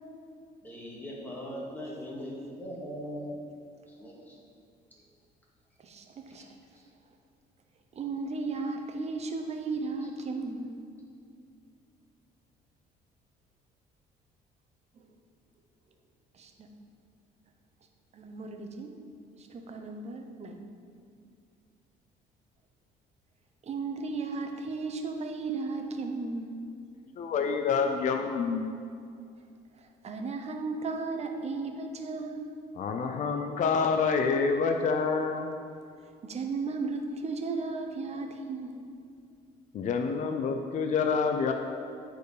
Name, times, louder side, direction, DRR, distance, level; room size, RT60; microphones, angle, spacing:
voice 1, 0.6-3.3 4.0-4.4, equal, 10° left, -5 dB, 2.1 m, -40 dB
voice 2, 5.8-6.5 8.0-10.8 16.3-16.7 18.1-18.9 19.4-20.6 23.6-26.6 30.0-32.4 36.2-38.8, right 3 dB, 40° right, 4 dB, 0.9 m, -35 dB
voice 3, 27.2-28.7 32.8-35.6 39.7-41.5, left 5 dB, 50° left, 5 dB, 0.5 m, -27 dB
9.1 x 4.5 x 5.0 m, 2.3 s
cardioid pair, 110°, 17 cm